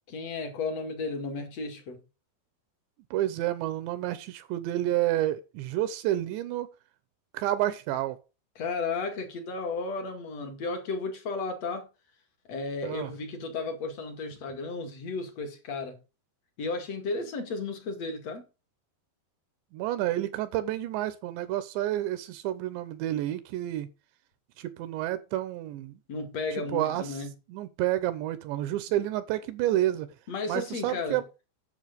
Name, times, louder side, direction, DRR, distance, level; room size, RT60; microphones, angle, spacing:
voice 1, 0.1-2.0 8.6-11.9 12.5-16.0 16.6-18.5 26.1-27.3 30.3-31.2, left 3 dB, 45° left, 2.4 m, -34 dB
voice 2, 3.1-6.7 7.3-8.2 12.8-13.1 19.7-23.9 24.6-26.0 26.5-27.2 27.5-30.1 30.5-31.2, right 14 dB, 80° right, 3.0 m, -29 dB
9.6 x 7.3 x 5.1 m
omnidirectional pair, 5.3 m